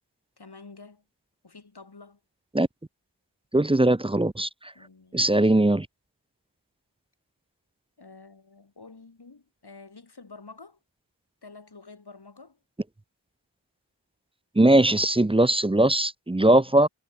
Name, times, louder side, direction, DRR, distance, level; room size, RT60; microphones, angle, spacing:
voice 1, 0.4-1.0 1.4-2.2 4.7-5.4 8.0-10.8 11.4-12.6, left 3 dB, 60° left, 7.5 m, -48 dB
voice 2, 3.5-4.5 5.1-5.9 14.6-16.9, right 1 dB, 15° right, 0.6 m, -20 dB
wide cardioid pair, 75°, 44 cm